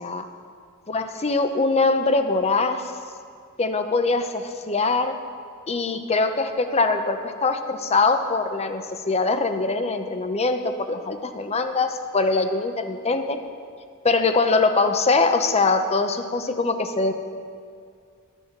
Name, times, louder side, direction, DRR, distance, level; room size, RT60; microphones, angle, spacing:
voice 1, 0.9-2.9 3.6-5.1 5.7-13.4 14.0-17.1, left 3 dB, 30° left, 8 dB, 0.7 m, -22 dB
12.5 x 9.0 x 5.9 m, 2.2 s
head